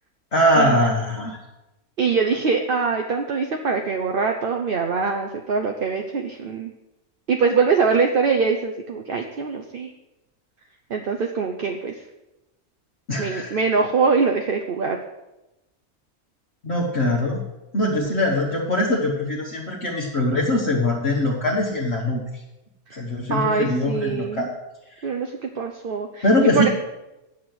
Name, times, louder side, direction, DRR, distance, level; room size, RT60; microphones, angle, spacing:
voice 1, 0.3-1.4 13.1-13.6 16.6-17.4 17.7-22.2 22.9-24.5 24.9-25.1 26.2-26.7, left 1 dB, 50° left, -4 dB, 1.6 m, -22 dB
voice 2, 2.0-6.7 7.3-9.9 10.9-12.0 13.2-15.0 22.9-23.0 23.3-24.4 25.0-26.3 26.5-26.7, right 5 dB, 45° right, 3 dB, 0.8 m, -23 dB
8.7 x 6.8 x 7.9 m, 0.97 s
omnidirectional pair, 1.5 m